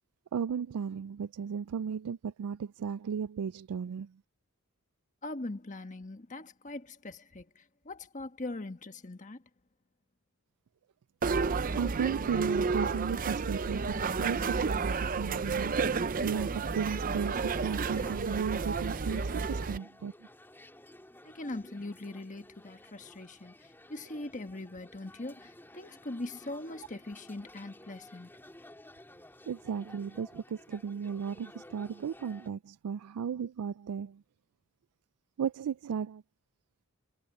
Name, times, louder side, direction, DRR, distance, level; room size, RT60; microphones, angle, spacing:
voice 1, 0.3-4.1 11.8-15.9 16.2-20.1 29.5-34.2 35.4-36.2, right 7 dB, 85° right, 0.4 m, -35 dB
voice 2, 5.2-9.4 21.2-28.3, left 2 dB, 35° left, 1.3 m, -41 dB
sound 1, 11.2-19.8, right 4 dB, 40° right, 0.5 m, -31 dB
sound 2, 16.6-32.5, left 1 dB, 10° left, 4.2 m, -54 dB
head